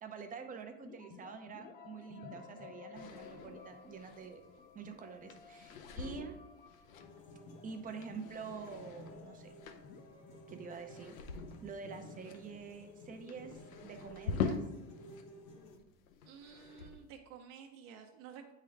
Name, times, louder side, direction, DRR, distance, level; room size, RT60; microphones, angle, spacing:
voice 1, 0.0-4.4 4.7-6.4 7.6-9.5 10.5-11.2 11.6-14.6, right 5 dB, 20° right, 6 dB, 0.6 m, -47 dB
sound 1, 0.8-12.6, left 6 dB, 25° left, 0.5 m, -56 dB
sound 2, 2.9-15.2 15.5-17.2, left 5 dB, 85° left, 0.7 m, -44 dB
sound 3, 6.9-15.8, left 1 dB, 60° left, 1.3 m, -54 dB
voice 2, 16.2-18.5, right 7 dB, 55° right, 2 dB, 0.8 m, -52 dB
8.4 x 3.7 x 3.3 m, 1.1 s
hypercardioid pair, 110°, 40 cm